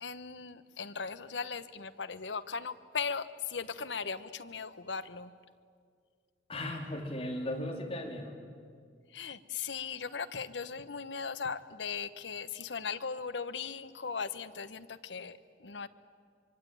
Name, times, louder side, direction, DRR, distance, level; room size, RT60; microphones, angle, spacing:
voice 1, 0.0-5.3 9.1-15.9, left 5 dB, 80° left, 13 dB, 1.0 m, -38 dB
voice 2, 6.5-8.4, left 1 dB, 30° left, 0 dB, 3.6 m, -36 dB
25.0 x 25.0 x 9.3 m, 2.1 s
head